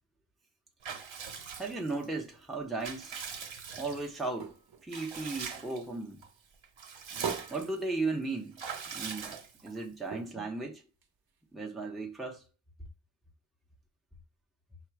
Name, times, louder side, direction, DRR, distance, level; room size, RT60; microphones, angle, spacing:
Water / Bathtub (filling or washing) / Liquid, 0.8-2.1 2.5-4.3 4.9-5.9 6.2-6.3 6.6-7.8 8.6-9.8, right 6 dB, 80° right, 0.9 m, -42 dB
voice 1, 1.3-3.2 3.8-4.5 4.8-6.2 7.5-8.6 8.9-9.4 9.6-10.8 11.5-12.4, right 3 dB, ahead, 0.6 m, -36 dB
sound 1, 4.4-6.1 6.5-8.8 9.1-9.2 9.5-9.6 10.1-11.6 12.2-12.3, right 6 dB, 50° right, 0.7 m, -43 dB
5.7 x 2.0 x 4.5 m
wide cardioid pair, 105°, 46 cm